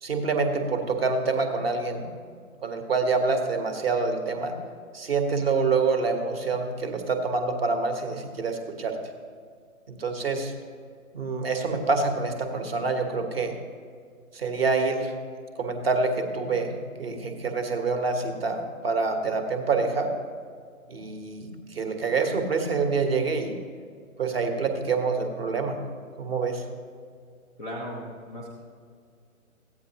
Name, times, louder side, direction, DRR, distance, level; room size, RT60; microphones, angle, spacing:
voice 1, 0.0-2.1 2.6-4.6 4.9-9.0 9.9-10.5 11.1-13.6 14.3-15.1 15.6-20.2 20.9-23.6 24.2-25.9 26.2-26.7, right 4 dB, 45° right, 6 dB, 1.2 m, -26 dB
voice 2, 27.6-28.5, equal, ahead, -2 dB, 0.6 m, -36 dB
14.5 x 9.1 x 2.8 m, 2.1 s
figure-of-eight pair, 145°, 43 cm